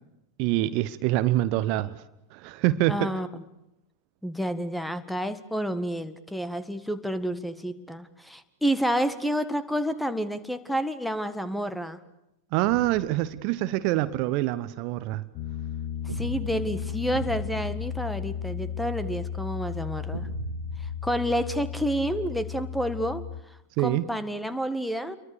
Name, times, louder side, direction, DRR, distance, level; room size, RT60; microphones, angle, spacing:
voice 1, 0.4-2.0 2.3-3.2 12.5-15.3 23.8-24.1, right 16 dB, 45° right, 0.9 m, -25 dB
voice 2, 2.9-3.4 4.2-12.0 16.1-20.3 21.0-23.3 23.8-25.2, equal, ahead, 1.8 m, -29 dB
sound 1, 12.6-14.0 16.1-19.0 20.1-22.3, right 4 dB, 75° right, 1.6 m, -41 dB
Piano, 15.3-23.4, left 9 dB, 45° left, 1.2 m, -34 dB
29.5 x 23.5 x 6.8 m
figure-of-eight pair, 90°, 0 cm